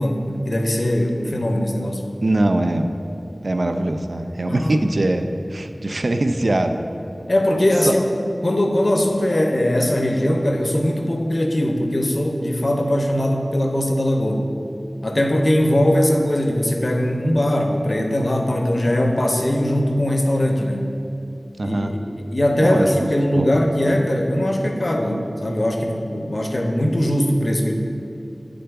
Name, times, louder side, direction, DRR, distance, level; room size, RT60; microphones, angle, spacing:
voice 1, 0.0-2.0 4.5-4.7 7.3-8.0 8.4-14.5 15.0-20.9 21.6-21.8 22.2-27.7, left 1 dB, 60° left, 3 dB, 0.6 m, -20 dB
voice 2, 2.2-2.9 3.4-6.8 7.8-7.9 21.6-22.0 22.6-23.1 23.4-23.5, right 1 dB, 75° right, 6 dB, 0.3 m, -22 dB
8.6 x 3.8 x 3.4 m, 2.8 s
wide cardioid pair, 55°, 0 cm